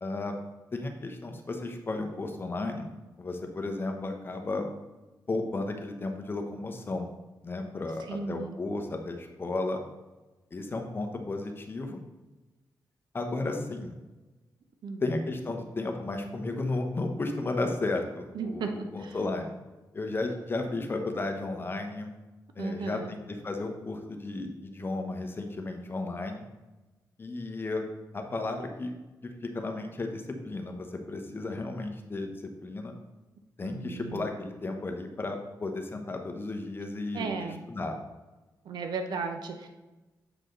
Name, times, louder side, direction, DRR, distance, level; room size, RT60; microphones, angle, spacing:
voice 1, 0.0-0.3 0.7-2.9 3.2-4.7 5.3-7.1 7.4-9.8 10.5-12.0 13.1-13.9 15.0-19.5 19.9-22.1 22.6-26.4 27.2-27.9 28.1-28.9 29.4-32.3 32.6-32.9 33.6-38.0, left 2 dB, 30° left, 4 dB, 0.9 m, -34 dB
voice 2, 8.1-8.5 14.8-15.0 18.3-19.2 22.6-23.1 33.6-34.3 37.1-37.6 38.6-39.7, right 4 dB, 80° right, 5 dB, 0.7 m, -35 dB
7.7 x 4.9 x 3.8 m, 1.1 s
cardioid pair, 110°, 7 cm